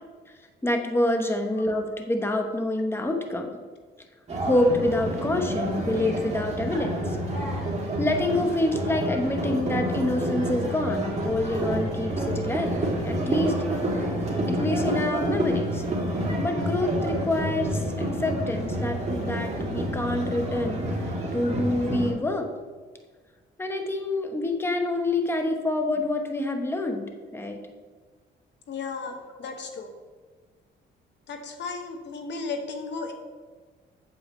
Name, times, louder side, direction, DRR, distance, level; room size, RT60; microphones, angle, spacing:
voice 1, 0.6-3.5 4.4-7.2 8.0-12.8 13.0-13.5 14.5-15.8 16.3-20.9 21.3-22.5 23.6-27.6, left 1 dB, 10° left, 4 dB, 1.0 m, -27 dB
sound 1, 4.3-22.1, right 1 dB, 35° right, 2.4 m, -29 dB
voice 2, 28.7-29.9 31.3-33.1, left 4 dB, 65° left, 6 dB, 1.1 m, -34 dB
8.1 x 7.9 x 3.1 m, 1.4 s
cardioid pair, 90°, 20 cm